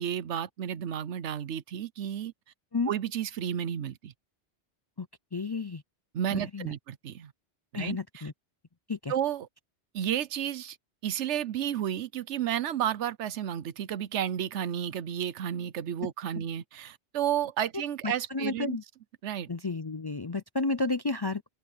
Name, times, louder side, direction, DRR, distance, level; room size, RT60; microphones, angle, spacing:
voice 1, 0.0-2.3 2.9-4.1 6.1-7.3 7.7-8.2 9.1-9.5 9.9-10.8 11.0-18.8 19.2-19.5, right 10 dB, 80° right, 1.0 m, -32 dB
voice 2, 5.3-5.8 6.3-6.7 7.7-8.3 8.9-9.1 16.4-16.5 18.0-18.8 19.5-21.5, left 3 dB, 35° left, 0.4 m, -32 dB
omnidirectional pair, 1.2 m